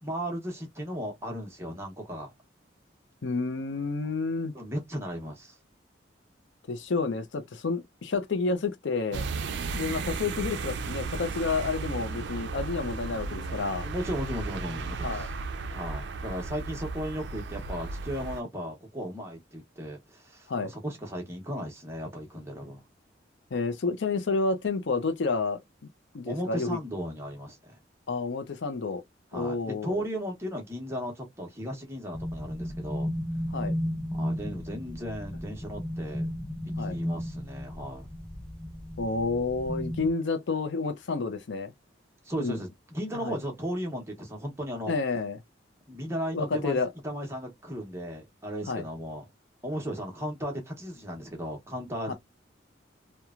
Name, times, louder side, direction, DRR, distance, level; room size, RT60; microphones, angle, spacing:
voice 1, 0.0-2.3 4.5-5.6 13.8-15.3 15.7-22.8 26.3-27.8 29.3-33.1 34.1-36.3 36.8-38.1 42.2-44.9 45.9-46.8 47.0-49.2 49.6-52.1, equal, 15° right, 0.8 m, -36 dB
voice 2, 3.2-4.5 6.7-9.2 9.7-13.9 15.0-15.3 20.5-20.7 23.5-25.6 26.1-26.8 28.1-29.0 29.3-30.0 33.5-33.7 36.8-37.0 39.0-41.7 42.4-42.6 43.1-43.4 44.9-45.4 46.3-46.9 48.7-48.8 52.1-52.2, left 4 dB, 75° left, 0.5 m, -30 dB
sound 1, 9.1-18.4, right 4 dB, 65° right, 0.4 m, -35 dB
sound 2, 32.1-40.1, equal, 5° left, 0.4 m, -34 dB
3.0 x 2.1 x 2.3 m
head